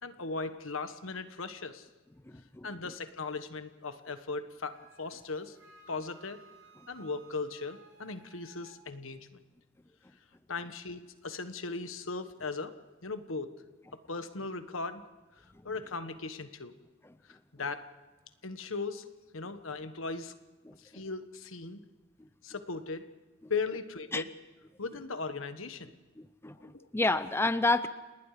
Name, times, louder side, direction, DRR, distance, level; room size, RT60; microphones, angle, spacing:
voice 1, 0.0-1.9 2.6-5.6 5.9-6.4 6.9-9.4 10.5-12.7 13.0-13.5 13.9-15.0 15.4-16.7 17.3-17.8 18.4-19.1 19.3-20.3 20.8-21.8 22.4-23.1 23.5-24.3 24.8-25.9 26.6-26.9, left 4 dB, 80° left, 10 dB, 1.4 m, -38 dB
voice 2, 2.3-2.7 20.7-21.0 22.2-22.3 24.1-24.2 26.2-27.9, left 2 dB, 10° left, 13 dB, 0.6 m, -30 dB
Wind instrument woodwind instrument, 4.7-8.8, right 3 dB, 65° right, 4.4 m, -58 dB
29.5 x 19.5 x 5.0 m, 1.2 s
head